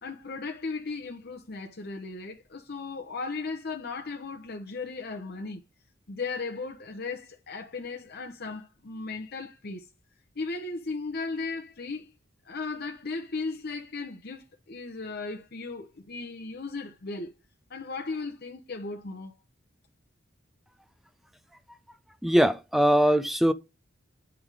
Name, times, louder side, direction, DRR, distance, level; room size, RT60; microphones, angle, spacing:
voice 1, 0.0-5.6 6.1-9.8 10.4-12.1 12.4-17.3 17.7-19.3, left 3 dB, 50° left, 0.9 m, -36 dB
voice 2, 22.2-23.5, equal, ahead, 0.4 m, -21 dB
9.0 x 3.6 x 4.7 m
head